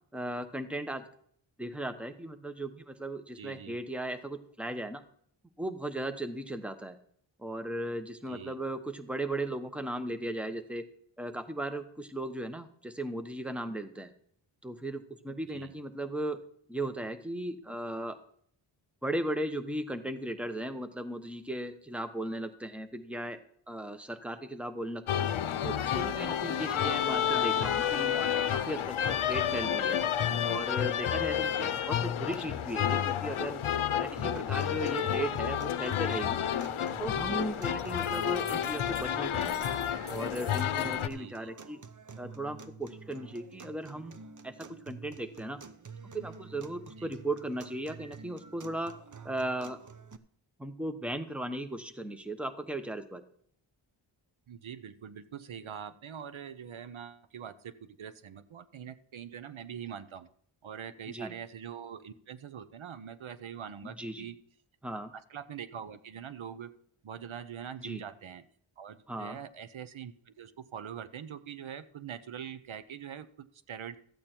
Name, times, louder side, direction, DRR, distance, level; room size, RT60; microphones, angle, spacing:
voice 1, 0.1-1.0 1.6-5.0 5.6-7.0 7.4-10.9 11.2-14.1 14.6-16.4 16.7-18.2 19.0-23.4 23.7-25.3 25.6-28.2 28.5-30.0 30.4-33.6 34.0-36.4 37.0-39.6 40.1-41.8 42.2-44.2 44.4-45.6 46.1-48.9 49.2-49.8 50.6-53.2 61.1-61.3 64.0-64.3 64.8-65.1 67.8-68.0 69.1-69.4, right 1 dB, ahead, 8 dB, 0.9 m, -37 dB
voice 2, 3.3-3.8 8.3-8.6 15.5-15.7 26.6-26.8 31.3-31.8 41.1-41.5 47.0-47.1 54.5-60.3 60.6-64.4 64.9-66.7 67.0-68.4 68.8-74.0, right 8 dB, 75° right, 13 dB, 0.8 m, -44 dB
sound 1, 25.1-41.1, left 9 dB, 85° left, 0.7 m, -30 dB
sound 2, 34.2-50.2, right 5 dB, 40° right, 0.8 m, -49 dB
sound 3, 37.7-39.1 39.3-41.1, left 3 dB, 30° left, 1.4 m, -51 dB
14.0 x 8.6 x 4.4 m, 0.63 s
wide cardioid pair, 115°, 48 cm